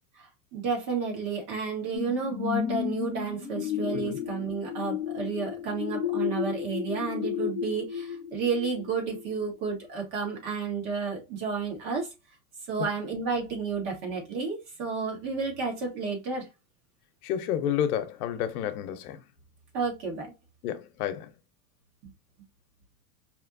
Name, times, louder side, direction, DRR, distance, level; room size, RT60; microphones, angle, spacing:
voice 1, 0.2-12.1 12.7-16.5 19.7-20.3, right 5 dB, 45° right, 2.0 m, -31 dB
sound 1, 1.9-9.3 9.8-9.9, left 9 dB, 5° left, 0.3 m, -33 dB
voice 2, 17.2-19.2 20.6-21.3, left 10 dB, 75° left, 0.8 m, -30 dB
4.9 x 3.1 x 2.5 m
supercardioid pair, 170°, 45 cm